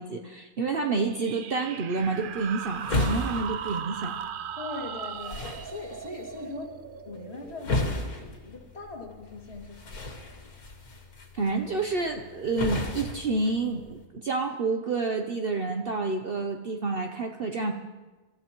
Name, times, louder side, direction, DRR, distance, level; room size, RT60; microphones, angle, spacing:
voice 1, 0.0-4.2 11.3-17.7, right 3 dB, 50° right, 4 dB, 0.8 m, -29 dB
sound 1, 1.0-8.3, right 8 dB, 80° right, 0.4 m, -38 dB
sound 2, 2.0-14.0, left 2 dB, 85° left, 2.4 m, -35 dB
voice 2, 4.6-6.7 7.1-10.3, left 3 dB, 45° left, -1 dB, 2.7 m, -41 dB
26.0 x 14.0 x 3.0 m, 1.3 s
omnidirectional pair, 1.5 m